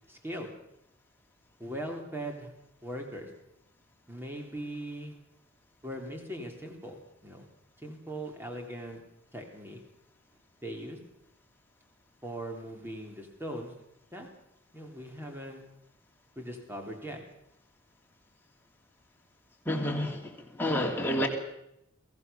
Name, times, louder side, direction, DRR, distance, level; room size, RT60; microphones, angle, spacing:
voice 1, 0.1-0.5 1.6-2.5 2.8-3.3 4.1-5.1 5.8-7.4 7.8-9.0 9.3-9.8 10.6-11.0 12.2-13.7 14.1-14.3 14.7-15.6 16.3-17.2, right 1 dB, 10° right, 2 dB, 3.5 m, -40 dB
voice 2, 19.6-21.3, left 1 dB, 10° left, 1 dB, 3.1 m, -29 dB
22.5 x 16.5 x 7.0 m, 0.81 s
head